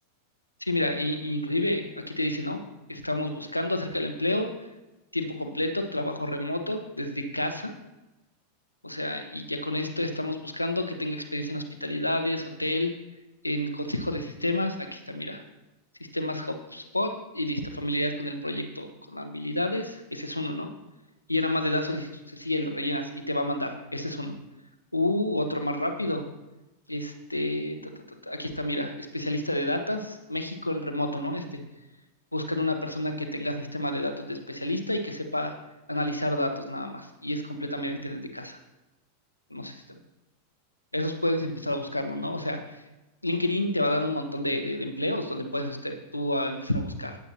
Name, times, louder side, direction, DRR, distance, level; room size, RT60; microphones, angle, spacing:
voice 1, 0.6-2.6 2.9-4.5 5.1-7.7 8.8-12.9 13.4-15.4 16.1-20.7 21.3-24.3 24.9-26.2 26.9-31.6 32.3-35.5 35.9-38.6 39.5-39.7 40.9-42.8 43.2-47.2, left 1 dB, 85° left, 6 dB, 1.2 m, -30 dB
17.5 x 8.1 x 2.9 m, 1.0 s
figure-of-eight pair, 90°, 0 cm